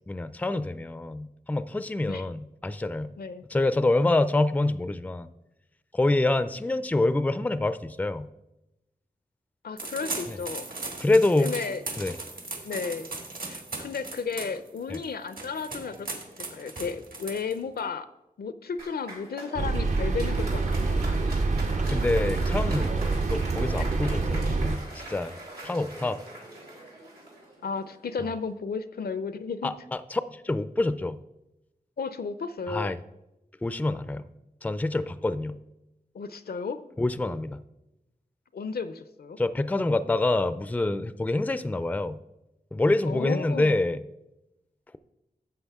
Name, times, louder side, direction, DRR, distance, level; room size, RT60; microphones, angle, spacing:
voice 1, 0.1-3.1 3.5-5.3 5.9-8.3 10.3-10.4 11.0-11.5 12.0-12.2 14.9-15.0 21.9-23.0 23.3-24.8 25.1-25.3 25.6-26.2 29.6-31.2 32.7-33.0 33.6-34.2 34.6-35.6 37.0-37.6 39.4-42.2 42.7-44.0, left 2 dB, 10° left, 14 dB, 0.3 m, -26 dB
voice 2, 9.6-10.7 11.4-11.8 12.6-13.1 13.5-16.1 16.5-18.1 18.4-21.3 23.8-23.9 27.6-29.7 32.0-32.9 36.1-36.8 38.5-39.4 43.1-43.8, left 5 dB, 80° left, 13 dB, 0.5 m, -33 dB
sound 1, 9.8-17.8, right 3 dB, 65° right, 1.7 m, -38 dB
Applause, 18.8-28.1, right 2 dB, 85° right, 2.6 m, -42 dB
sound 2, 19.6-24.8, right 3 dB, 50° right, 0.5 m, -26 dB
11.0 x 7.6 x 3.5 m, 0.93 s
wide cardioid pair, 95°, 16 cm